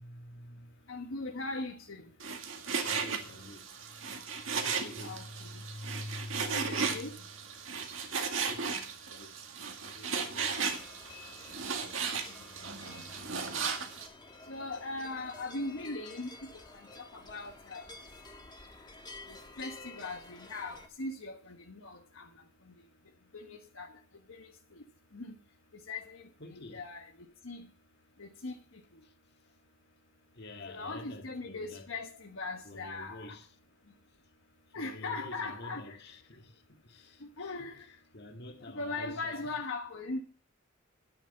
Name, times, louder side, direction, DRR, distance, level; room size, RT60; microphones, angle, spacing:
voice 1, 0.0-0.9 2.7-7.2 8.3-11.1 12.6-13.5 26.4-26.9 29.0-29.1 30.3-31.9 32.6-33.5 34.7-37.5 38.1-39.6, left 1 dB, 55° left, 1.9 m, -48 dB
voice 2, 0.9-2.1 5.0-5.6 6.5-7.1 12.6-12.7 13.3-13.4 14.5-16.3 16.7-17.9 19.3-22.3 23.3-24.0 24.3-24.8 25.1-25.3 25.9-26.2 26.5-27.7 28.2-28.5 30.7-33.4 34.7-36.0 37.2-37.9 38.6-40.2, left 3 dB, 75° left, 1.4 m, -40 dB
Frying (food), 2.2-14.1, right 5 dB, 70° right, 2.0 m, -36 dB
sound 1, 10.4-20.9, left 3 dB, 20° left, 1.5 m, -51 dB
10.5 x 9.1 x 5.4 m
head